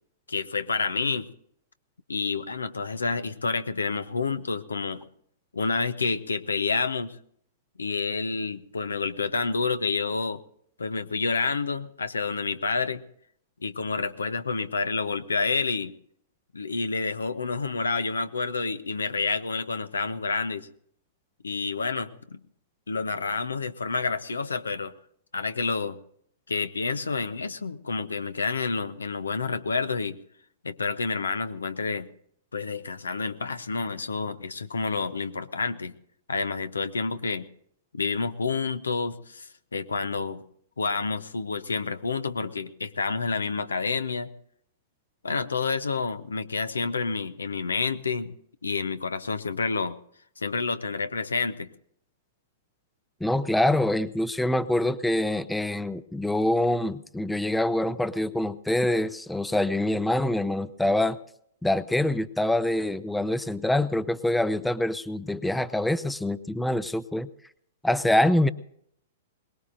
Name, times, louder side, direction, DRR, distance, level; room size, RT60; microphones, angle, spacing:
voice 1, 0.3-1.3 2.1-5.1 5.5-7.2 7.8-10.4 10.8-13.0 13.6-15.9 16.5-20.7 21.4-22.4 22.9-24.9 25.3-26.0 26.5-30.2 30.6-32.1 32.5-35.9 36.3-37.5 37.9-40.4 40.8-44.3 45.2-48.3 48.6-50.0 50.4-51.7, left 4 dB, 80° left, 12 dB, 0.8 m, -29 dB
voice 2, 53.2-61.2 61.6-67.3 67.8-68.5, left 1 dB, 5° left, 16 dB, 0.6 m, -25 dB
22.0 x 19.5 x 2.6 m, 0.69 s
figure-of-eight pair, 110°, 0 cm